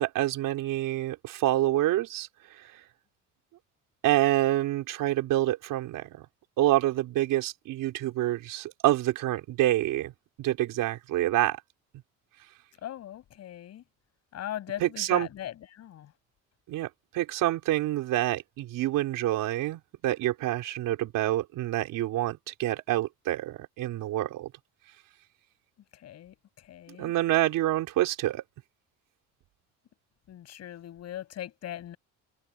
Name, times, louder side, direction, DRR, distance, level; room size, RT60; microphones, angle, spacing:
voice 1, 0.0-2.3 2.6-2.7 4.0-6.2 6.6-10.1 10.4-11.6 14.8-15.3 16.7-16.9 17.1-24.5 27.0-28.4, right 15 dB, 90° right, 4.3 m, -27 dB
voice 2, 12.8-13.8 14.3-16.1 25.9-27.1 30.3-32.0, left 12 dB, 55° left, 7.6 m, -40 dB
cardioid pair, 175°, 32 cm